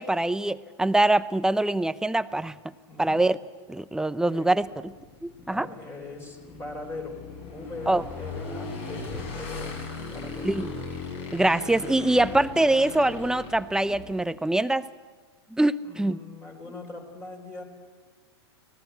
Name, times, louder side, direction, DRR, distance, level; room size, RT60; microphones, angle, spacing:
voice 1, 0.0-2.7 3.0-3.4 3.7-4.9 5.2-5.7 7.9-8.0 10.4-10.7 11.3-14.9 15.5-16.2, right 2 dB, 5° right, 15 dB, 0.7 m, -24 dB
voice 2, 2.9-3.2 4.3-4.5 5.4-7.2 7.5-9.8 10.1-10.5 15.8-17.6, left 3 dB, 20° left, 2 dB, 4.5 m, -40 dB
Motorcycle / Engine, 4.6-14.3, left 3 dB, 45° left, 8.0 m, -38 dB
25.5 x 18.5 x 8.3 m, 1.5 s
hypercardioid pair, 110°, 15 cm